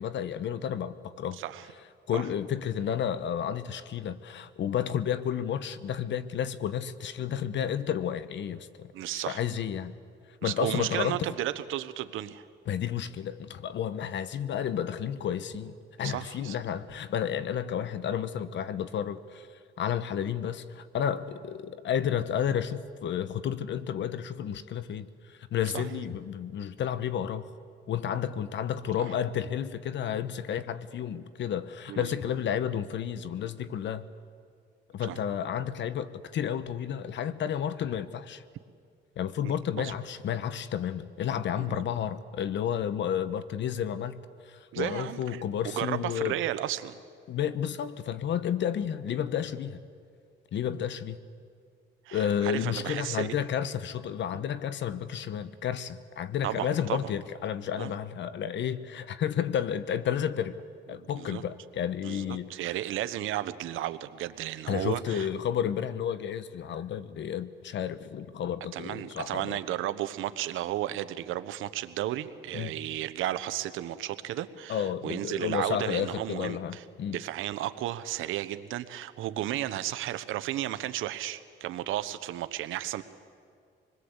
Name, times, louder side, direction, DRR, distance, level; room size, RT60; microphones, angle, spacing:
voice 1, 0.0-1.4 2.1-9.9 10.4-11.3 12.7-19.5 19.8-25.1 25.5-27.5 27.9-34.1 34.9-38.4 39.2-44.2 44.4-46.4 47.3-49.8 50.5-51.2 52.1-60.6 60.9-62.6 64.7-69.6 72.5-72.7 74.7-77.2, left 9 dB, 65° left, 1.1 m, -31 dB
voice 2, 1.3-1.7 2.1-2.2 8.9-9.4 10.4-12.5 16.0-16.6 25.7-25.8 29.0-29.1 31.9-32.4 35.1-35.2 39.4-39.9 41.6-41.7 44.7-47.0 52.1-53.4 56.4-57.1 57.8-57.9 60.9-61.4 62.0-65.3 68.7-83.0, right 13 dB, 90° right, 1.0 m, -34 dB
26.0 x 21.0 x 8.1 m
cardioid pair, 90°, 20 cm